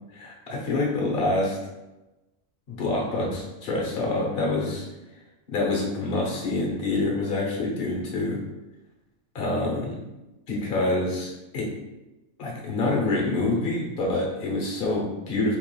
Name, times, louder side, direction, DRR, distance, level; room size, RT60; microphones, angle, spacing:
voice 1, 0.1-1.6 2.7-4.9 5.5-8.4 9.3-10.0 10.5-11.7 12.4-15.6, left 2 dB, 45° left, -1 dB, 1.0 m, -26 dB
4.7 x 3.3 x 2.2 m, 1.0 s
omnidirectional pair, 1.4 m